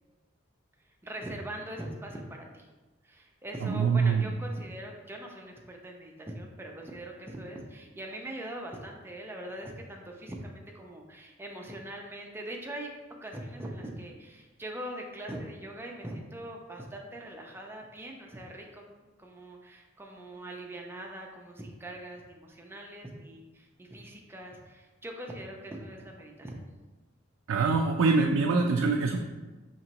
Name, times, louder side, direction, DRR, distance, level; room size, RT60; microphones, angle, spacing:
voice 1, 1.0-2.7 3.0-12.9 13.2-18.8 19.2-26.6, right 1 dB, 10° right, 0 dB, 0.4 m, -42 dB
voice 2, 3.6-4.3 27.5-29.2, right 4 dB, 85° right, 1 dB, 0.4 m, -24 dB
5.6 x 2.9 x 2.9 m, 1.2 s
head